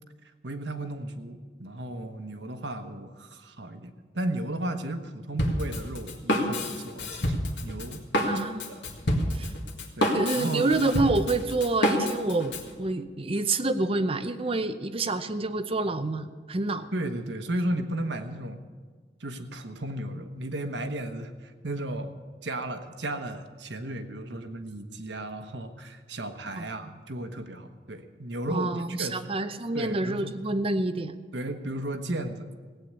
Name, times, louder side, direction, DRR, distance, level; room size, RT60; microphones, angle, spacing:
voice 1, 0.4-8.4 8.8-8.9 10.0-10.7 16.9-18.6 19.2-22.1 22.4-28.7 29.0-29.3 29.7-30.3 31.3-32.5, right 1 dB, 85° right, 7 dB, 1.2 m, -34 dB
Drum kit, 5.4-12.7, equal, 75° left, 2.0 m, -28 dB
voice 2, 8.2-8.6 9.3-9.5 10.1-16.9 26.6-26.9 28.5-31.2, right 2 dB, 30° right, 9 dB, 0.7 m, -28 dB
17.0 x 8.6 x 8.2 m, 1.5 s
head